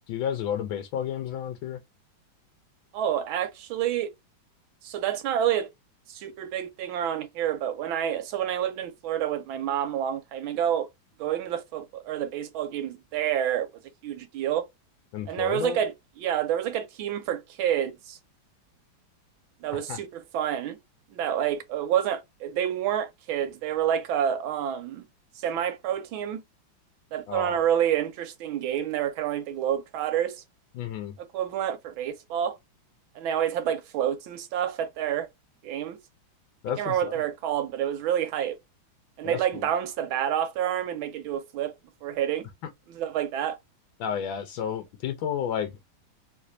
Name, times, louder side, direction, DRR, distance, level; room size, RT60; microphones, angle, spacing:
voice 1, 0.0-1.8 15.1-15.8 19.9-20.0 27.3-27.6 30.7-31.2 36.6-37.2 39.2-39.6 44.0-45.8, left 8 dB, 85° left, 1.4 m, -31 dB
voice 2, 2.9-4.1 4.8-5.7 6.1-10.9 11.2-13.7 14.0-14.6 15.3-18.2 19.6-20.8 21.1-25.0 25.4-26.4 27.1-30.4 31.3-32.6 33.1-35.3 35.6-36.0 36.8-38.6 39.2-41.8 42.0-42.4 42.9-43.6, right 10 dB, 85° right, 1.5 m, -28 dB
3.3 x 3.1 x 2.6 m
omnidirectional pair, 2.2 m